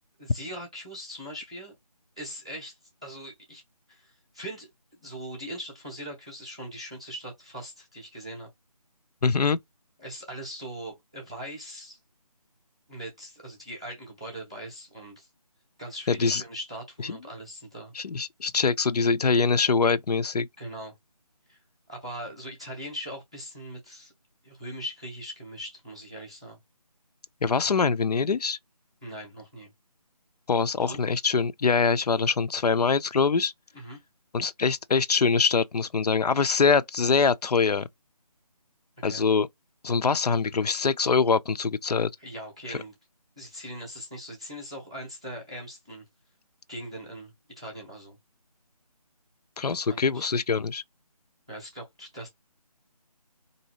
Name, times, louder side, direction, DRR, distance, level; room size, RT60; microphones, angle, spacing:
voice 1, 0.2-1.7 2.2-3.6 3.9-8.5 10.0-12.0 12.9-15.3 15.8-17.9 20.6-20.9 21.5-21.6 21.9-24.1 24.4-26.6 29.0-29.7 30.8-31.0 33.7-34.0 39.0-39.2 42.2-42.9 43.4-46.0 46.7-48.2 49.7-50.3 51.5-52.3, equal, 10° right, 0.5 m, -40 dB
voice 2, 9.2-9.6 16.1-16.4 17.9-20.5 27.4-28.6 30.5-33.5 34.3-37.9 39.0-39.5 39.8-42.1 42.7-42.8 49.6-50.8, left 5 dB, 80° left, 0.4 m, -24 dB
4.1 x 2.7 x 2.9 m
figure-of-eight pair, 170°, 20 cm